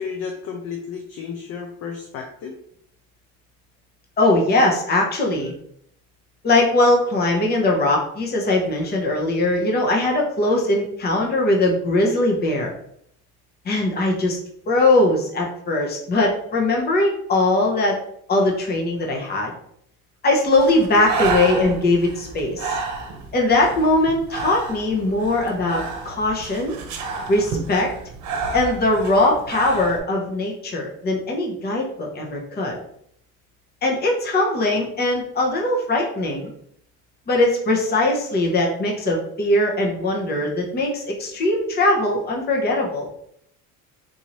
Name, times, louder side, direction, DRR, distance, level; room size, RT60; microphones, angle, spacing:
voice 1, 0.0-2.5, left 6 dB, 45° left, 3 dB, 0.5 m, -32 dB
voice 2, 4.2-5.5 6.4-12.7 13.6-14.4 14.7-18.0 18.3-19.5 20.2-22.8 23.3-26.7 27.3-27.9 28.5-32.8 33.8-36.5 37.3-43.1, left 2 dB, 30° left, 0 dB, 0.9 m, -20 dB
Breathing, 20.5-30.0, right 4 dB, 60° right, 0.9 m, -30 dB
4.0 x 2.7 x 3.0 m, 0.68 s
cardioid pair, 130°, 33 cm